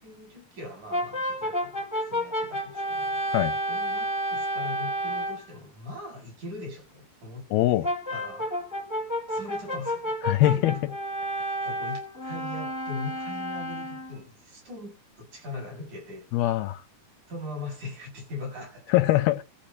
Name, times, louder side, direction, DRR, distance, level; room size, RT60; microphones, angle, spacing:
voice 1, 0.0-3.2 3.7-8.5 9.3-10.1 10.4-10.9 11.6-16.3 17.3-18.9, left 2 dB, 50° right, 8.4 m, -40 dB
Brass instrument, 0.9-5.5 7.8-14.2, equal, 5° left, 1.6 m, -31 dB
voice 2, 7.5-7.9 10.2-10.8 16.3-16.8 18.9-19.4, left 16 dB, 90° left, 2.8 m, -22 dB
14.0 x 4.9 x 8.9 m
omnidirectional pair, 4.4 m